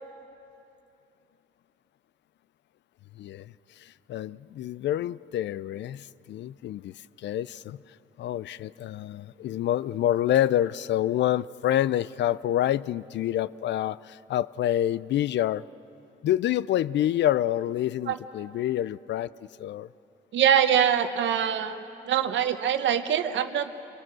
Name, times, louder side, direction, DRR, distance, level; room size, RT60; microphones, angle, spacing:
voice 1, 3.2-7.8 8.2-15.6 16.2-19.3 19.6-19.9, left 12 dB, 65° left, 19 dB, 0.4 m, -27 dB
voice 2, 20.3-21.8 22.1-23.7, right 9 dB, 70° right, 9 dB, 1.0 m, -23 dB
28.0 x 18.5 x 6.2 m, 2.7 s
cardioid pair, 90°, 20 cm